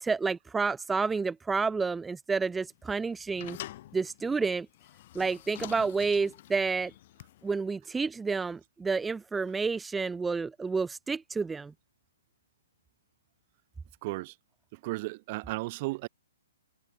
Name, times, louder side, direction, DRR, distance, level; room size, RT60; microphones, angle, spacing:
voice 1, 0.0-3.6 3.9-4.7 5.1-6.9 7.4-11.7, right 4 dB, 10° right, 0.7 m, -30 dB
sound 1, 2.7-7.6, left 15 dB, 45° left, 1.2 m, -47 dB
voice 2, 14.0-14.4 14.7-16.1, right 22 dB, 40° right, 0.9 m, -34 dB
hypercardioid pair, 135°, 0 cm